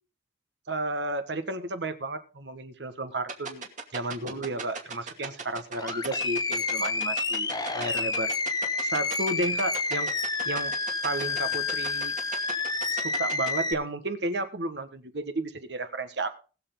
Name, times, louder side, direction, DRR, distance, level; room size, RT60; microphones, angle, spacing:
voice 1, 0.7-3.7 3.9-7.5 7.7-8.3 8.8-10.1 10.4-10.7 11.0-12.1 13.0-16.4, right 2 dB, 65° right, 9 dB, 1.6 m, -32 dB
sound 1, 3.3-13.5, right 4 dB, 40° right, 2.5 m, -35 dB
Animal, 5.7-13.7, left 4 dB, 20° left, 0.9 m, -29 dB
20.5 x 7.2 x 3.9 m, 0.35 s
head